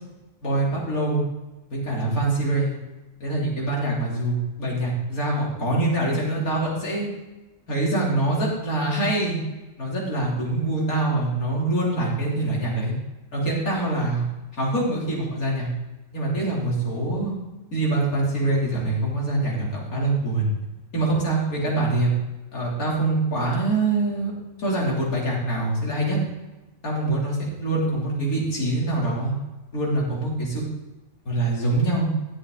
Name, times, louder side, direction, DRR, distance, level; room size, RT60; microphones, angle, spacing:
voice 1, 0.4-1.2 1.7-2.7 3.2-7.1 7.7-9.4 9.8-13.0 13.3-14.2 14.5-15.7 16.1-17.3 17.7-20.5 20.9-22.1 22.5-24.3 24.6-26.2 26.8-29.3 29.7-30.6 31.3-32.1, right 2 dB, 90° left, -4 dB, 3.6 m, -24 dB
13.0 x 8.4 x 3.8 m, 1.1 s
omnidirectional pair, 1.5 m